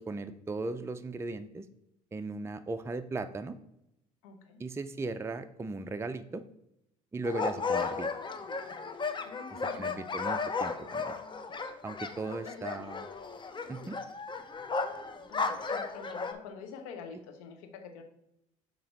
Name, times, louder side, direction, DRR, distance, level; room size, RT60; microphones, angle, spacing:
voice 1, 0.0-1.7 2.1-3.6 4.6-6.4 7.1-8.1 9.5-11.2 11.8-13.1 13.7-14.0, right 3 dB, 15° right, 9 dB, 0.4 m, -37 dB
voice 2, 4.2-4.6 9.2-10.1 12.4-12.7 13.8-13.9 15.3-18.0, left 5 dB, 80° left, 6 dB, 1.0 m, -47 dB
sound 1, 7.2-16.3, left 4 dB, 25° left, 0.8 m, -35 dB
7.1 x 2.9 x 5.4 m, 0.82 s
hypercardioid pair, 65°, 17 cm